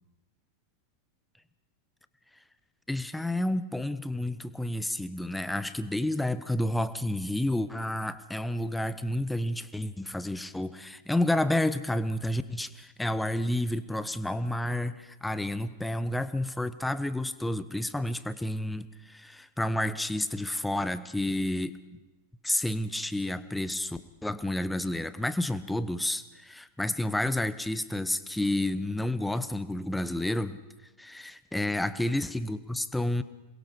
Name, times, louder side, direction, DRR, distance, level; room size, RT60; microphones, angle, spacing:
voice 1, 2.9-22.0 22.4-30.6 31.0-33.2, left 1 dB, 5° left, 13 dB, 1.1 m, -30 dB
27.5 x 21.5 x 5.1 m, 1.1 s
figure-of-eight pair, 90°, 0 cm